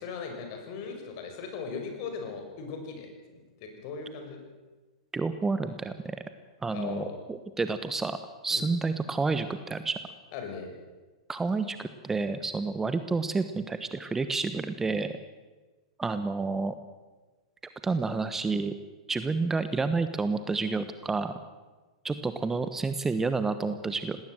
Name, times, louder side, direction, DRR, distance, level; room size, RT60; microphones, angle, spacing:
voice 1, 0.0-3.1 3.3-4.4 6.7-7.2 8.5-8.6 10.3-10.7, left 5 dB, 50° left, 4 dB, 5.9 m, -38 dB
voice 2, 5.1-6.2 6.6-8.2 8.4-9.9 11.3-15.1 16.0-16.7 17.8-18.7 19.1-21.4 22.0-24.2, right 4 dB, 10° right, 11 dB, 1.2 m, -29 dB
19.5 x 18.0 x 7.9 m, 1.3 s
figure-of-eight pair, 105°, 3 cm